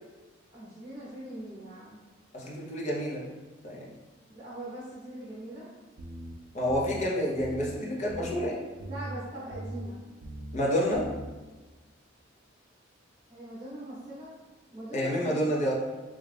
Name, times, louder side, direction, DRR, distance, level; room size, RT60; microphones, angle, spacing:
voice 1, 0.5-2.0 4.3-5.7 8.9-10.0 13.3-14.3 14.7-15.4, right 1 dB, 25° right, -8 dB, 0.8 m, -41 dB
voice 2, 2.3-3.3 3.6-4.0 6.5-8.6 10.5-11.1 14.9-15.7, equal, 35° left, -3 dB, 0.7 m, -29 dB
sound 1, 6.0-6.3 6.7-7.0 7.4-7.7 8.1-8.5 8.8-9.2 9.5-9.9 10.2-10.6 10.9-11.3, right 1 dB, 65° right, 0.4 m, -40 dB
3.5 x 2.3 x 3.3 m, 1.2 s
head